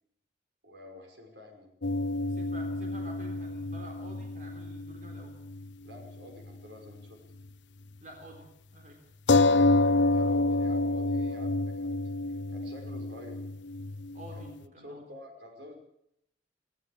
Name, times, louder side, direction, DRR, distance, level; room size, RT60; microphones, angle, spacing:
voice 1, 0.6-1.7 5.8-7.2 10.1-12.0 12.3-13.4 14.3-15.8, left 1 dB, 75° right, 4 dB, 5.5 m, -48 dB
sound 1, 1.8-5.7 6.0-6.1 9.3-14.5, left 2 dB, 80° left, 0.8 m, -28 dB
voice 2, 2.2-5.4 8.0-9.0 11.3-11.4 14.1-15.1, equal, 45° right, 2 dB, 3.8 m, -49 dB
18.0 x 18.0 x 8.6 m, 0.76 s
head